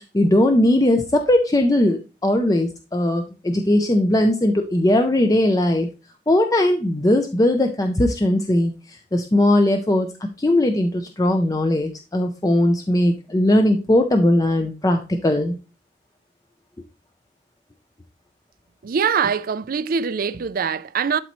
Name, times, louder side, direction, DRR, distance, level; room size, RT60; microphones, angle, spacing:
voice 1, 0.0-5.9 6.3-8.7 9.1-10.1 10.4-15.5, left 1 dB, 20° left, 0.6 m, -19 dB
voice 2, 18.8-21.2, right 6 dB, 55° right, 0.4 m, -23 dB
12.0 x 4.1 x 3.1 m
head